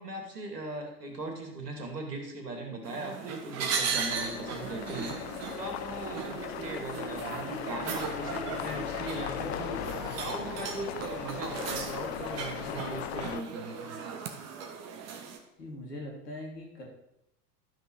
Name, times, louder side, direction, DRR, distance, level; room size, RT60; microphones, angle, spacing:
voice 1, 0.0-14.0, right 2 dB, 75° right, 3 dB, 2.7 m, -39 dB
sound 1, 2.8-15.4, right 6 dB, 30° right, 1.5 m, -37 dB
sound 2, 3.9-13.4, left 14 dB, 45° left, 0.5 m, -38 dB
voice 2, 15.6-16.9, left 1 dB, 75° left, -1 dB, 3.6 m, -41 dB
12.5 x 6.1 x 6.3 m, 0.84 s
figure-of-eight pair, 90°, 48 cm